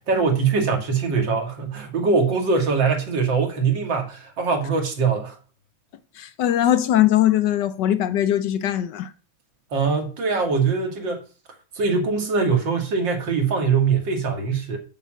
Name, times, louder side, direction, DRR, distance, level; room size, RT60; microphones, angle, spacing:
voice 1, 0.1-5.4 9.7-11.2 11.8-14.8, right 5 dB, 65° right, 2.6 m, -22 dB
voice 2, 6.2-9.1, left 12 dB, 70° left, 1.2 m, -20 dB
7.0 x 6.0 x 7.4 m
omnidirectional pair, 2.2 m